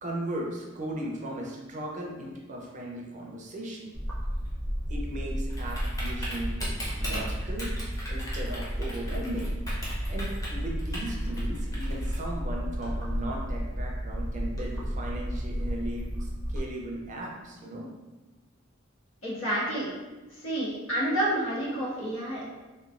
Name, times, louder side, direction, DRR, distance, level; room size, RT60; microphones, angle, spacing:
voice 1, 0.0-3.9 4.9-6.6 7.0-7.8 8.1-9.5 10.1-17.9, right 1 dB, 35° right, -1 dB, 0.4 m, -37 dB
Typing, 3.9-16.6, equal, 15° left, 0.7 m, -32 dB
voice 2, 19.2-19.9 20.3-22.4, right 1 dB, 90° left, -7 dB, 1.1 m, -29 dB
3.0 x 2.2 x 2.4 m, 1.2 s
head